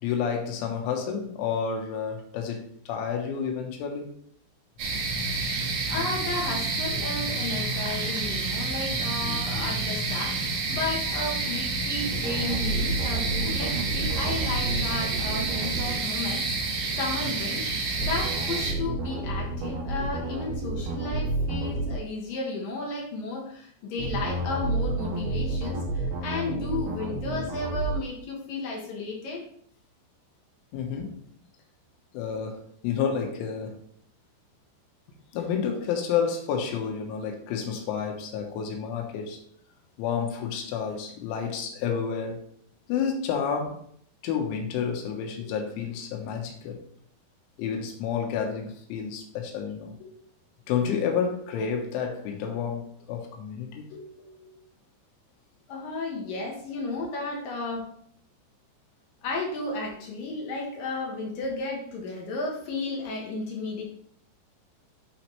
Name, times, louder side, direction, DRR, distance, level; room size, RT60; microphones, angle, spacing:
voice 1, 0.0-4.1 30.7-31.2 32.1-33.8 35.3-39.4 40.0-42.4 42.9-43.8 44.2-46.8 47.6-50.0 50.7-53.9, left 7 dB, 90° left, 3.6 m, -30 dB
sound 1, 4.8-18.7, right 3 dB, 55° right, 2.6 m, -29 dB
sound 2, 5.1-14.7, left 2 dB, 35° left, 1.5 m, -40 dB
voice 2, 5.9-29.4 30.9-31.0 35.4-35.5 45.4-45.5 50.0-50.1 53.9-54.3 55.7-57.9 59.2-63.8, left 3 dB, 65° left, 2.3 m, -33 dB
sound 3, 12.0-16.0 18.0-22.0 24.0-27.9, right 2 dB, 80° right, 3.5 m, -30 dB
12.0 x 4.1 x 3.1 m
omnidirectional pair, 5.3 m